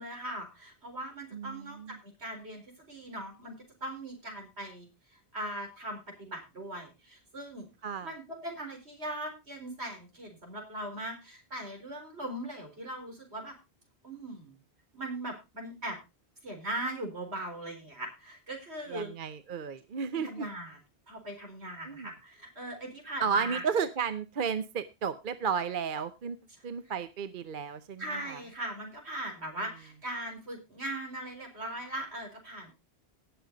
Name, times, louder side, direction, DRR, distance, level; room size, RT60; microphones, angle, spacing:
voice 1, 0.0-4.9 5.3-7.7 8.0-13.5 14.0-14.5 14.9-16.0 16.4-19.1 20.2-20.8 21.1-23.7 26.8-26.9 28.0-32.7, right 1 dB, 80° right, 3 dB, 4.5 m, -39 dB
voice 2, 1.3-2.0 7.8-8.1 18.9-20.5 21.9-22.1 23.2-26.4 26.6-28.4, right 6 dB, 55° right, 12 dB, 0.9 m, -33 dB
18.0 x 7.0 x 3.9 m, 0.26 s
omnidirectional pair, 1.1 m